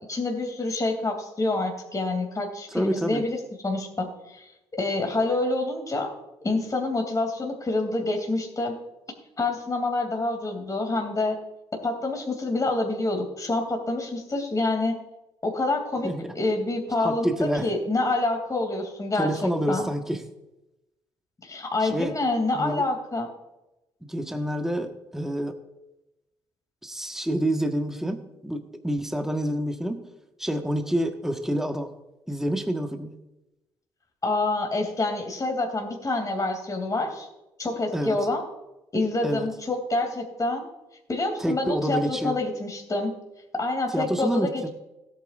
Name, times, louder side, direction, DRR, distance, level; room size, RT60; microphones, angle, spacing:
voice 1, 0.1-4.5 4.8-6.1 6.4-8.7 9.4-11.4 11.8-15.0 15.4-19.9 21.4-23.3 34.2-37.3 37.6-38.4 38.9-40.7 41.1-43.1 43.5-44.7, left 2 dB, 30° left, 2 dB, 2.9 m, -27 dB
voice 2, 2.7-3.2 16.0-16.3 17.0-17.7 19.2-20.2 21.8-22.1 22.5-22.8 24.1-25.6 26.8-30.1 30.4-31.9 32.3-33.1 37.9-38.2 39.2-39.5 41.4-42.4 43.9-44.7, right 1 dB, 5° right, 5 dB, 1.5 m, -28 dB
17.5 x 9.1 x 2.6 m, 0.95 s
hypercardioid pair, 50°, 11 cm